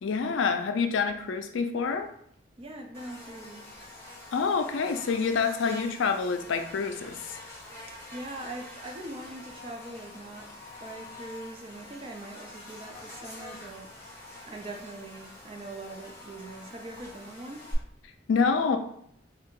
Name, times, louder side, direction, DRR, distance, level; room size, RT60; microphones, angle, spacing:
voice 1, 0.0-2.1 4.3-7.2 18.3-18.8, left 5 dB, 80° left, 7 dB, 0.4 m, -27 dB
voice 2, 2.6-3.7 7.9-10.5 10.8-14.1 14.5-17.7, right 2 dB, 30° right, 2 dB, 0.4 m, -42 dB
Buzz, 2.9-17.7, left 1 dB, 15° left, 0.7 m, -46 dB
2.7 x 2.3 x 3.6 m, 0.68 s
head